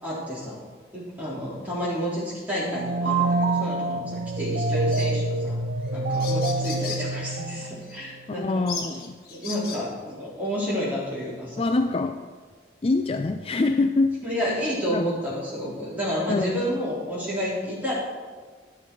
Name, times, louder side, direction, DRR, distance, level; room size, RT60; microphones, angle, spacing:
voice 1, 0.0-0.5 0.9-5.6 5.9-8.6 9.3-11.6 14.2-17.9, equal, 10° right, -8 dB, 3.8 m, -30 dB
sound 1, 2.6-8.1, right 2 dB, 80° right, 0.8 m, -26 dB
sound 2, 4.9-5.2 5.8-5.9 6.1-7.1 7.8-8.0 8.7-9.9, left 4 dB, 55° left, 1.5 m, -36 dB
voice 2, 8.3-9.2 11.6-12.2 12.8-14.1 14.9-15.1 16.3-16.7, left 3 dB, 30° left, 7 dB, 0.3 m, -24 dB
12.0 x 8.6 x 4.7 m, 1.5 s
head